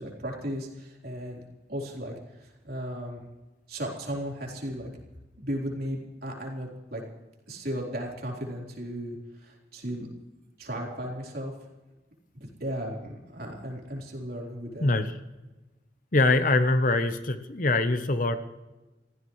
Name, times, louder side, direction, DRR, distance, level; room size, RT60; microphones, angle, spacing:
voice 1, 0.0-1.4 1.7-3.2 3.7-4.9 5.4-7.0 7.5-10.1 10.6-11.5 12.3-14.9, equal, 55° right, -1 dB, 4.0 m, -35 dB
voice 2, 16.1-18.4, left 2 dB, 45° left, 9 dB, 0.9 m, -23 dB
26.5 x 15.5 x 3.2 m, 1.1 s
head